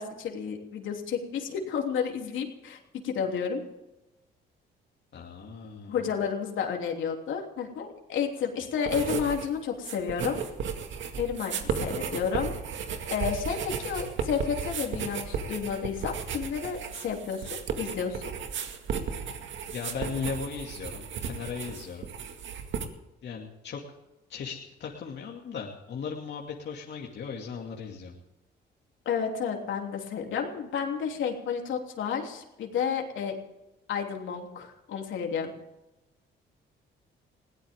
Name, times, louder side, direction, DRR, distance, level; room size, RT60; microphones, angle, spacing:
voice 1, 0.0-3.6 5.9-10.4 11.2-12.5 13.1-18.3 29.0-33.4 33.9-35.5, left 7 dB, 75° left, 1 dB, 3.2 m, -31 dB
voice 2, 5.1-6.0 19.7-22.1 23.2-23.8 24.3-28.1, left 6 dB, 60° left, -1 dB, 2.5 m, -37 dB
sound 1, 8.8-9.5 9.7-22.9, right 6 dB, 70° right, 2.1 m, -34 dB
21.0 x 17.0 x 3.7 m, 0.98 s
cardioid pair, 90°, 20 cm